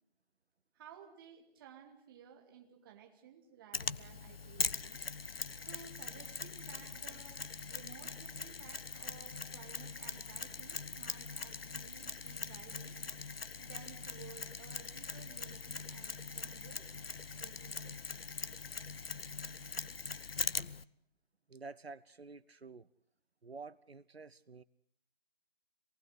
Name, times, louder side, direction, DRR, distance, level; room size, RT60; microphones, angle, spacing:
voice 1, 0.7-5.0 5.6-12.9 13.6-16.8 17.3-18.1, right 8 dB, 20° right, 2 dB, 3.0 m, -56 dB
Mechanisms, 3.7-20.8, left 5 dB, 70° left, 1.0 m, -42 dB
voice 2, 21.5-22.9 23.4-24.6, right 4 dB, 85° right, 19 dB, 0.9 m, -50 dB
26.5 x 19.5 x 8.2 m, 0.66 s
figure-of-eight pair, 155°, 30 cm